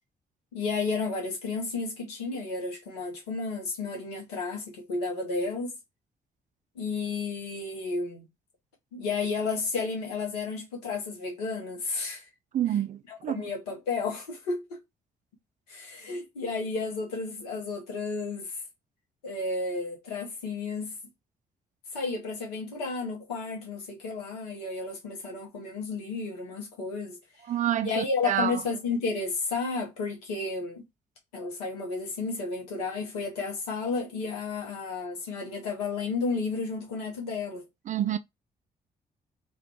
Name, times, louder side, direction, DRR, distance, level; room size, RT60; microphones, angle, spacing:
voice 1, 0.5-5.8 6.7-8.3 8.9-12.2 13.1-14.8 15.7-18.5 19.2-20.9 21.9-27.2 27.8-30.8 31.3-37.6, left 4 dB, 80° left, 1.0 m, -32 dB
voice 2, 12.5-13.4 27.5-28.5 37.9-38.2, right 10 dB, 40° right, 0.4 m, -28 dB
2.5 x 2.4 x 3.4 m
figure-of-eight pair, 40°, 20 cm